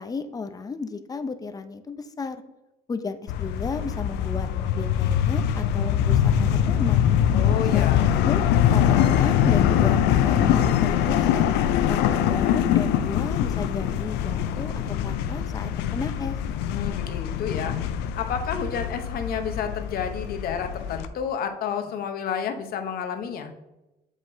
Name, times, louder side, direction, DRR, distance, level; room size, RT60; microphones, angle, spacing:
voice 1, 0.0-2.4 2.9-7.0 7.7-7.9 8.2-8.4 8.7-11.5 11.9-16.4, left 4 dB, 20° left, 10 dB, 0.5 m, -33 dB
sound 1, 3.3-21.1, left 9 dB, 90° left, 0.4 m, -23 dB
voice 2, 7.3-8.2 16.7-17.8 18.2-23.5, left 7 dB, 60° left, 7 dB, 0.8 m, -30 dB
7.4 x 4.9 x 2.7 m, 0.98 s
cardioid pair, 110°, 17 cm